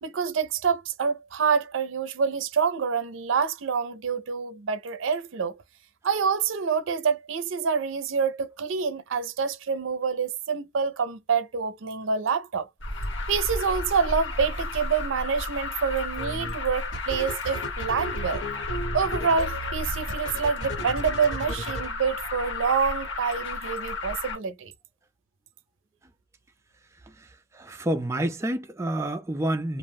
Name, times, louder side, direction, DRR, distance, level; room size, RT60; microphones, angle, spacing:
voice 1, 0.0-5.6 6.0-12.7 13.3-18.4 18.9-24.7, right 6 dB, 85° right, 0.5 m, -27 dB
Alarm, 12.8-24.4, left 3 dB, 70° left, 1.0 m, -33 dB
sound 1, 16.2-16.5 16.9-21.9, right 1 dB, 90° left, 1.3 m, -34 dB
voice 2, 27.0-29.8, right 1 dB, 15° right, 0.3 m, -29 dB
2.4 x 2.1 x 3.3 m
head